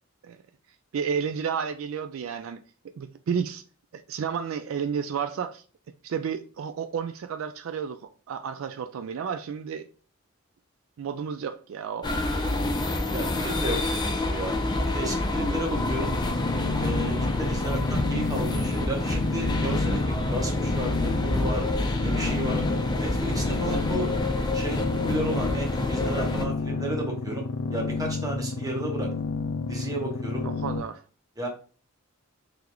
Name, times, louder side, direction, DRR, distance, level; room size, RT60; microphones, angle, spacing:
voice 1, 0.9-3.6 3.9-5.6 6.0-8.0 8.3-9.8 11.0-12.1 30.4-31.0, right 7 dB, 75° right, 0.3 m, -31 dB
sound 1, 12.0-26.4, left 2 dB, 20° left, 0.5 m, -28 dB
voice 2, 12.9-14.5 14.9-16.1 16.8-21.7 22.0-22.6 23.0-24.1 24.5-29.1 29.7-30.5 31.4-31.5, right 1 dB, 20° right, 1.0 m, -33 dB
sound 2, 15.7-30.8, left 3 dB, 90° left, 0.4 m, -31 dB
3.8 x 3.3 x 3.0 m
head